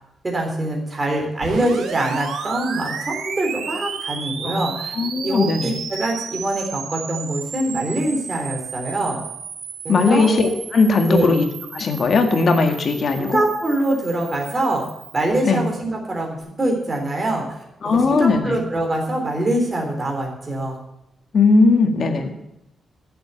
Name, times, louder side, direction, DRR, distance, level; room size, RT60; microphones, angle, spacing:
voice 1, 0.2-4.9 5.2-9.2 9.8-10.3 11.0-11.3 13.1-14.8 15.1-17.4 17.9-20.8 22.2-22.3, right 1 dB, 20° right, 0 dB, 3.6 m, -24 dB
sound 1, 1.4-15.3, right 6 dB, 85° right, 1.7 m, -33 dB
voice 2, 5.0-5.8 9.9-11.4 11.7-13.4 15.4-15.6 17.8-18.6 21.3-22.3, left 3 dB, 45° left, 5 dB, 1.8 m, -18 dB
14.0 x 8.0 x 6.9 m, 0.87 s
wide cardioid pair, 160°, 0 cm